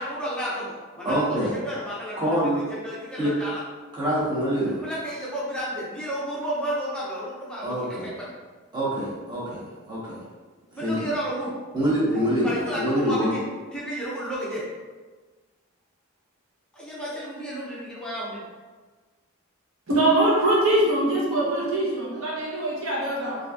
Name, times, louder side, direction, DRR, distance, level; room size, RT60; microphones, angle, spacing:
voice 1, 0.0-2.3 2.7-3.6 4.8-8.3 10.7-11.5 12.4-13.4 13.7-14.6 16.7-18.4 22.1-22.2, equal, 5° left, -8 dB, 0.6 m, -32 dB
voice 2, 1.0-1.6 2.2-2.6 3.2-3.3 3.9-4.8 7.6-8.1 8.7-10.2 10.8-11.1 11.7-13.3, equal, 20° right, -9 dB, 1.1 m, -25 dB
voice 3, 19.9-23.4, right 1 dB, 70° right, -4 dB, 0.9 m, -22 dB
3.9 x 2.6 x 2.3 m, 1.3 s
head